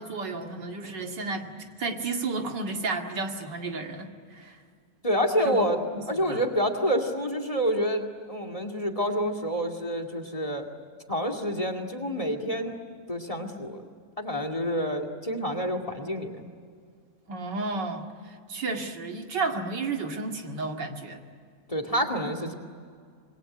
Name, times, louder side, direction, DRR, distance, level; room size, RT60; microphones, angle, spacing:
voice 1, 0.0-4.6 5.4-5.7 5.9-6.4 17.3-21.2, right 3 dB, 80° right, 3 dB, 2.8 m, -32 dB
voice 2, 5.0-5.8 6.1-10.7 11.1-12.8 13.1-13.9 14.2-16.5 21.7-22.5, equal, 20° left, 7 dB, 2.3 m, -28 dB
27.0 x 22.0 x 9.8 m, 2.1 s
omnidirectional pair, 1.9 m